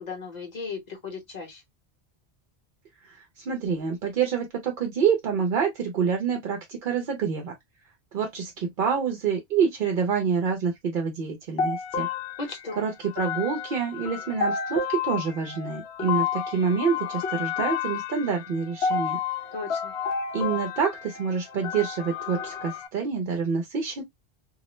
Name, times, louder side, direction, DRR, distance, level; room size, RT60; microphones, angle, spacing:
voice 1, 0.0-1.6 12.4-12.9 19.5-19.9, left 4 dB, 45° left, 1.0 m, -36 dB
voice 2, 3.0-7.6 8.1-12.1 12.8-19.2 20.3-24.0, right 6 dB, 60° right, 0.7 m, -27 dB
sound 1, 11.6-22.9, left 6 dB, 80° left, 0.8 m, -31 dB
2.4 x 2.0 x 2.9 m
omnidirectional pair, 1.0 m